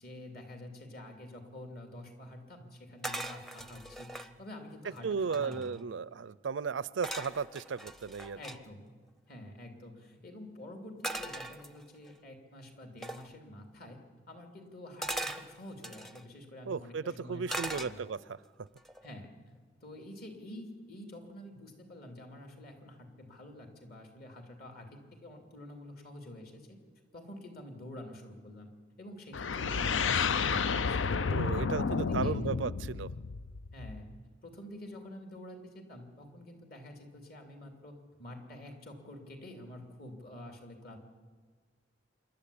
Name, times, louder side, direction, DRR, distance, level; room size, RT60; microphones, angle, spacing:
voice 1, 0.0-5.7 8.4-8.8 9.3-14.0 14.3-18.0 19.0-26.8 27.1-28.7 29.0-31.3 31.5-32.6 33.7-34.1 34.4-41.0, left 1 dB, 55° left, 3 dB, 2.9 m, -48 dB
sound 1, 3.0-4.3 4.9-5.0 5.2-5.8 7.0-8.6 11.0-12.1 13.0-13.3 15.0-16.2 17.5-18.3 18.8-19.1, right 1 dB, ahead, 0.6 m, -40 dB
voice 2, 5.0-8.4 16.7-18.2 31.3-33.1, right 5 dB, 80° right, 20 dB, 0.5 m, -35 dB
sound 2, 29.3-34.2, left 5 dB, 90° left, 0.5 m, -31 dB
26.5 x 11.5 x 8.6 m, 1.5 s
head